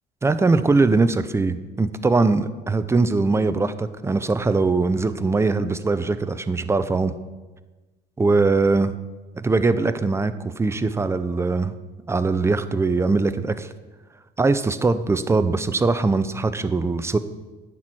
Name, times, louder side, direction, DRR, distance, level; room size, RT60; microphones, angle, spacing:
voice 1, 0.2-7.1 8.2-8.9 9.3-11.7 12.1-13.7 14.4-17.2, right 3 dB, 15° right, 12 dB, 0.5 m, -21 dB
10.0 x 4.6 x 7.7 m, 1.2 s
cardioid pair, 110°, 17 cm